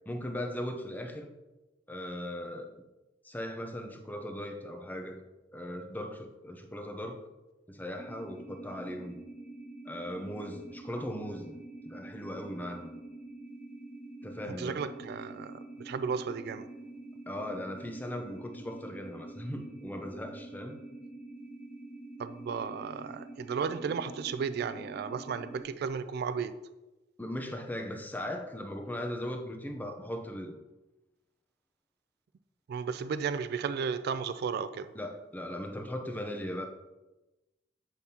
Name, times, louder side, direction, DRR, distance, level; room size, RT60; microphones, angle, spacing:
voice 1, 0.1-1.3 1.9-2.7 3.2-5.2 5.5-7.2 7.7-9.2 9.9-11.6 11.8-13.0 14.2-14.8 17.3-20.8 27.2-30.6 34.9-36.7, left 1 dB, 10° left, 3 dB, 0.6 m, -38 dB
sound 1, 7.9-25.6, right 2 dB, 40° left, 1.7 m, -46 dB
voice 2, 14.6-15.6 15.8-16.7 22.2-26.5 32.7-34.9, right 6 dB, 60° right, 12 dB, 0.3 m, -34 dB
8.1 x 5.3 x 2.8 m, 1.0 s
head